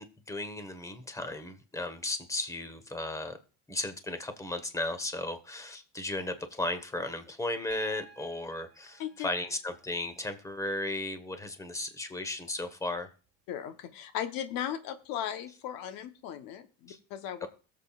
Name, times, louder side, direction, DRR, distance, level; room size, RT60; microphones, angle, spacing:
voice 1, 0.0-3.4 3.7-13.1 16.9-17.0 17.4-17.5, left 2 dB, 10° left, 10 dB, 1.2 m, -35 dB
Piano, 7.7-11.7 13.3-13.4, right 6 dB, 45° right, 1.6 m, -55 dB
voice 2, 13.5-17.5, left 10 dB, 75° left, 10 dB, 1.1 m, -37 dB
21.5 x 7.5 x 2.4 m, 0.37 s
cardioid pair, 130°, 35 cm